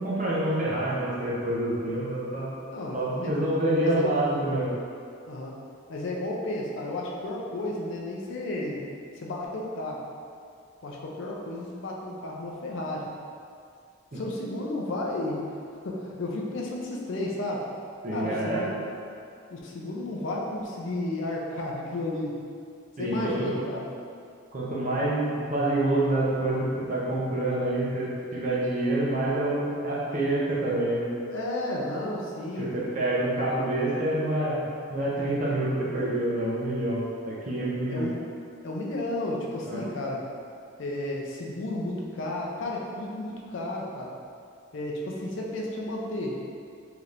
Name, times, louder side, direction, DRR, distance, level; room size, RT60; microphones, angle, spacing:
voice 1, 0.0-2.5 2.9-4.7 14.1-14.2 18.0-18.7 23.0-23.5 24.5-31.1 32.6-34.6 34.9-38.1 39.7-39.8, right 1 dB, 40° right, -6 dB, 0.6 m, -27 dB
voice 2, 2.7-3.5 3.8-4.1 5.3-5.5 5.9-8.8 9.2-10.0 10.8-13.1 14.1-15.4 15.8-17.6 18.1-18.7 19.5-22.4 23.0-23.9 31.3-32.7 37.9-38.1 38.6-40.2 40.8-44.1 44.7-46.3, left 1 dB, 65° left, -2 dB, 0.4 m, -32 dB
3.3 x 2.8 x 2.4 m, 2.3 s
head